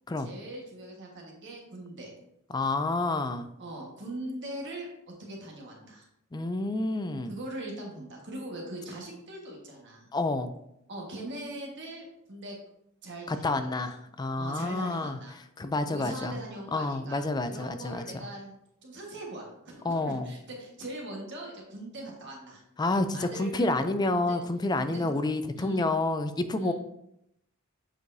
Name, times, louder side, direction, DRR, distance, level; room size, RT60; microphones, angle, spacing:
voice 1, 0.2-2.1 3.6-4.9 5.2-6.0 7.3-10.1 10.9-12.6 13.0-13.9 14.3-15.3 15.9-22.6 23.1-24.4 24.8-25.1 25.5-25.9 26.5-26.7, right 1 dB, 55° right, -1 dB, 1.4 m, -41 dB
voice 2, 2.5-3.5 6.3-7.4 10.1-10.5 13.3-15.2 15.6-16.4 16.7-18.3 19.8-20.3 22.8-26.7, left 2 dB, 20° left, 9 dB, 0.3 m, -29 dB
7.5 x 4.7 x 2.6 m, 0.79 s
head